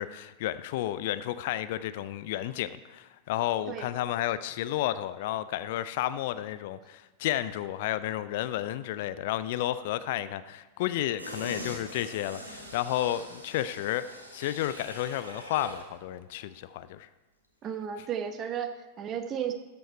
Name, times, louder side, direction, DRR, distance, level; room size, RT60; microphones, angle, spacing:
voice 1, 0.0-14.1 14.3-17.1, left 13 dB, 50° left, 14 dB, 0.3 m, -32 dB
sound 1, 11.2-15.9 16.3-16.4, equal, 80° right, 1.5 m, -43 dB
voice 2, 17.6-19.5, right 8 dB, 30° right, 8 dB, 0.9 m, -34 dB
13.5 x 5.3 x 4.5 m, 1.1 s
figure-of-eight pair, 90°, 0 cm